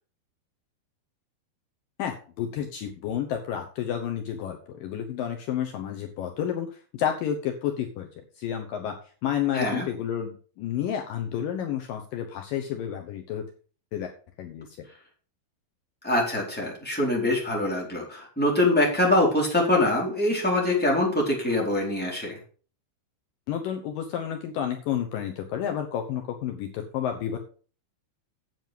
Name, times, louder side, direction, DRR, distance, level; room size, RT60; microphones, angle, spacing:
voice 1, 2.0-8.1 8.4-8.9 9.2-13.4 13.9-14.1 14.4-14.7 23.5-27.4, left 9 dB, 85° left, 4 dB, 1.9 m, -30 dB
voice 2, 9.5-9.9 16.0-22.4, left 1 dB, ahead, -3 dB, 3.4 m, -24 dB
9.9 x 7.7 x 5.2 m, 0.40 s
omnidirectional pair, 5.4 m